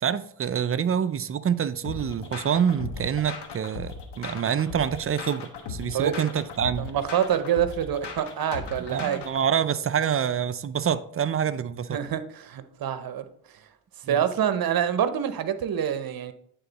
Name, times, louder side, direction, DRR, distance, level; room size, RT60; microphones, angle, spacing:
voice 1, 0.0-6.9 8.9-12.0 14.0-14.2, right 8 dB, 30° right, 0.4 m, -26 dB
sound 1, 1.8-9.5, left 5 dB, 65° left, 1.2 m, -38 dB
voice 2, 6.8-9.2 11.9-13.3 14.1-16.3, right 9 dB, 50° right, 0.8 m, -26 dB
8.9 x 3.8 x 4.0 m
cardioid pair, 75°, 45 cm